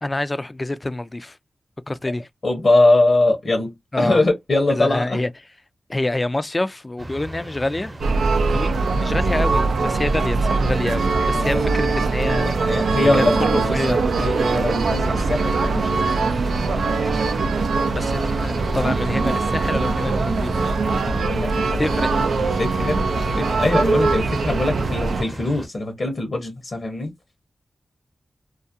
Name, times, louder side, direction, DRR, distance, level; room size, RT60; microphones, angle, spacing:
voice 1, 0.0-1.4 1.9-2.3 3.9-4.2 4.7-5.3 5.9-7.9 8.5-12.9 13.1-14.0 17.9-20.7 21.8-22.1, left 2 dB, 30° left, 0.3 m, -26 dB
voice 2, 2.4-5.2 9.1-9.2 11.3-11.7 12.4-13.8 14.1-17.2 21.0-21.8 22.1-23.0 23.3-27.1, left 2 dB, 60° left, 0.8 m, -22 dB
sound 1, 7.0-25.7, right 1 dB, 35° right, 0.7 m, -36 dB
sound 2, 8.0-25.2, right 3 dB, 90° right, 0.3 m, -22 dB
2.4 x 2.1 x 2.6 m
cardioid pair, 45°, 0 cm